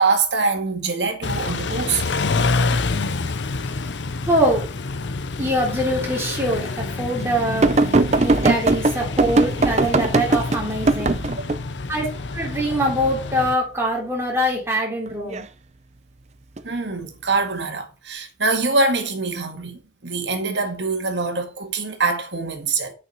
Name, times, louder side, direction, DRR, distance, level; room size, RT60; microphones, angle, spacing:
voice 1, 0.0-2.0 16.6-22.9, right 3 dB, 70° right, 2.0 m, -24 dB
Car / Idling / Accelerating revving vroom, 1.2-13.5, left 3 dB, 75° left, 0.7 m, -27 dB
voice 2, 4.2-4.7 5.4-7.7 8.2-11.2 11.9-12.1 12.3-15.4, equal, 15° right, 3.1 m, -23 dB
sound 1, 7.6-11.6 15.1-15.4 16.6-16.7, right 2 dB, 35° right, 0.6 m, -19 dB
8.4 x 6.4 x 4.8 m
head